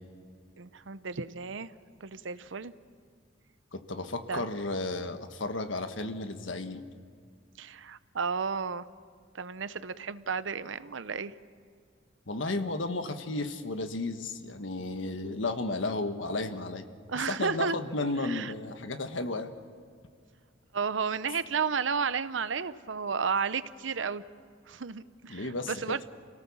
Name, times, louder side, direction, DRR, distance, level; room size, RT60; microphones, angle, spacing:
voice 1, 0.6-1.7 2.0-2.7 4.3-4.5 7.6-8.8 9.3-11.3 17.1-17.8 18.2-18.5 20.7-24.2 24.7-26.0, right 5 dB, 80° right, 14 dB, 0.8 m, -32 dB
voice 2, 3.7-6.8 12.3-16.9 17.3-19.5 25.3-25.7, left 2 dB, 85° left, 8 dB, 1.5 m, -33 dB
28.5 x 17.5 x 7.3 m, 2.2 s
head